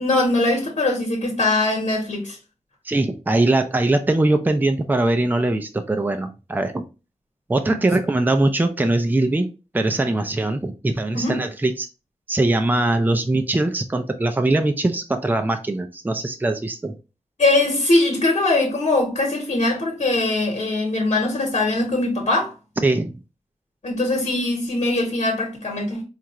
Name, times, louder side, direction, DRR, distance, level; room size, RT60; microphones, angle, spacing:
voice 1, 0.0-2.4 11.1-11.4 17.4-22.5 23.8-26.0, left 2 dB, 65° left, 1.1 m, -21 dB
voice 2, 2.9-6.8 7.5-9.5 9.7-11.9 12.3-17.0 22.8-23.2, right 2 dB, 15° right, 0.4 m, -21 dB
4.3 x 2.5 x 3.0 m
wide cardioid pair, 100°, 12 cm